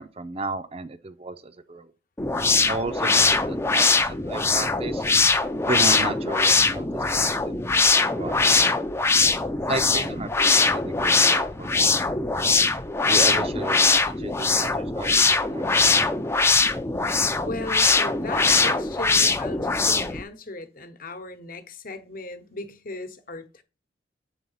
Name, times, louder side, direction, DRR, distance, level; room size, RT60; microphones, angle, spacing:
voice 1, 0.0-1.9 2.7-5.1 5.6-6.9 7.2-8.7 9.7-11.7 13.1-16.1, right 3 dB, 35° right, 0.6 m, -33 dB
sound 1, 2.2-20.2, left 4 dB, 15° left, 0.5 m, -21 dB
voice 2, 17.4-23.6, left 2 dB, 50° left, 1.0 m, -37 dB
7.9 x 3.9 x 5.5 m
head